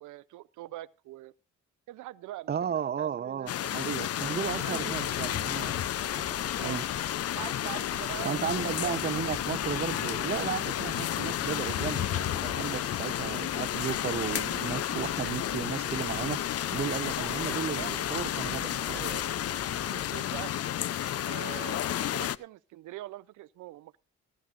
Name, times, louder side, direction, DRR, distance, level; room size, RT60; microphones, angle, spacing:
voice 1, 0.0-1.3 1.9-3.8 4.6-5.2 6.6-6.8 7.3-9.2 17.2-18.0 18.9-19.4 19.7-20.5 21.2-24.0, right 16 dB, 75° right, 0.5 m, -44 dB
voice 2, 2.5-5.7 6.6-6.8 8.2-16.4 16.7-19.0, right 8 dB, 35° right, 0.6 m, -34 dB
sound 1, 3.5-22.4, left 11 dB, 55° left, 0.5 m, -31 dB
sound 2, 4.4-19.9, left 2 dB, 15° left, 1.3 m, -47 dB
17.5 x 12.0 x 2.4 m
cardioid pair, 90°, 30 cm